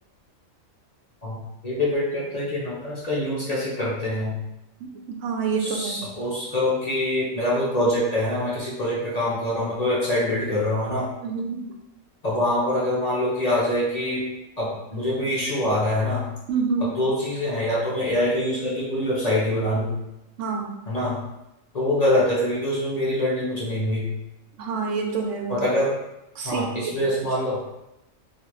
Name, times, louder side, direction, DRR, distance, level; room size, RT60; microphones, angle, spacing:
voice 1, 1.6-4.3 5.6-11.1 12.2-14.2 14.6-16.3 16.9-19.9 20.9-21.2 21.7-24.1 25.5-25.9 26.4-27.6, left 1 dB, 35° left, -7 dB, 0.8 m, -24 dB
voice 2, 4.8-6.1 11.2-11.7 16.5-17.0 20.4-20.7 24.6-25.6 26.4-26.9, right 5 dB, 75° right, 1 dB, 0.9 m, -27 dB
3.7 x 2.6 x 3.0 m, 0.89 s
omnidirectional pair, 1.4 m